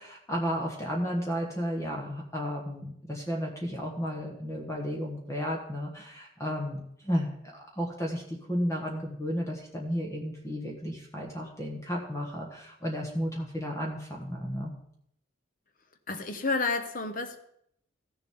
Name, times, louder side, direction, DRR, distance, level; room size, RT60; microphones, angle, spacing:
voice 1, 0.0-14.7, equal, 15° left, 0 dB, 1.3 m, -33 dB
voice 2, 16.1-17.4, left 3 dB, 45° left, 8 dB, 0.9 m, -30 dB
15.0 x 6.9 x 3.7 m, 0.72 s
head